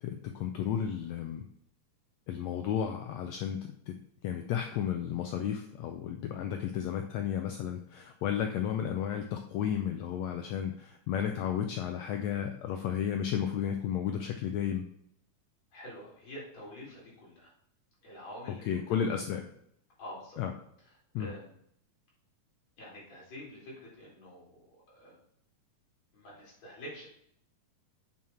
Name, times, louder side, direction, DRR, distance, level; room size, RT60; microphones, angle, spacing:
voice 1, 0.0-1.5 2.3-3.9 4.2-14.8 18.5-19.5 20.4-20.5 21.1-21.3, left 9 dB, 80° left, 5 dB, 1.6 m, -33 dB
voice 2, 15.7-17.5 18.0-19.0 20.0-20.4 21.2-21.6 22.8-25.2 26.1-27.1, equal, 55° left, -6 dB, 4.6 m, -47 dB
7.3 x 6.2 x 4.3 m, 0.69 s
omnidirectional pair, 3.7 m